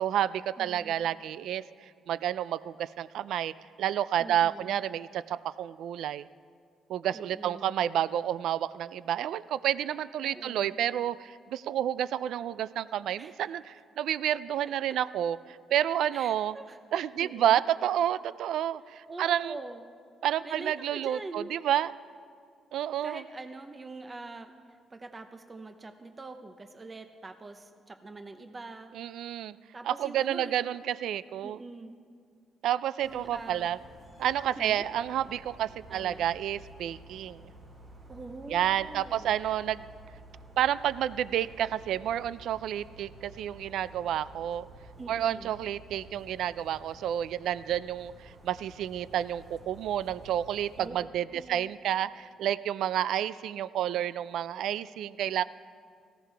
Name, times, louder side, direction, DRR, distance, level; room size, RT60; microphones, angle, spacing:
voice 1, 0.0-1.6 2.1-6.3 6.9-16.5 16.9-19.6 20.2-21.9 22.7-23.2 28.9-29.6 29.9-31.6 32.6-33.8 34.2-37.4 38.5-39.9 40.6-44.7 45.1-55.4, right 11 dB, 80° right, 17 dB, 0.3 m, -30 dB
voice 2, 0.6-1.1 4.2-4.8 7.1-7.7 10.2-10.8 13.2-13.4 14.9-15.0 16.1-16.8 17.2-17.6 19.1-19.8 20.4-21.5 23.0-29.0 29.7-30.8 31.4-32.0 33.0-33.7 34.6-34.9 35.9-36.2 38.1-39.3 45.0-45.6 50.8-51.1 51.3-51.7, right 3 dB, 30° right, 7 dB, 0.7 m, -44 dB
sound 1, 33.0-50.9, right 1 dB, 55° right, 3.7 m, -52 dB
18.5 x 15.5 x 3.4 m, 2.1 s
cardioid pair, 90°, 0 cm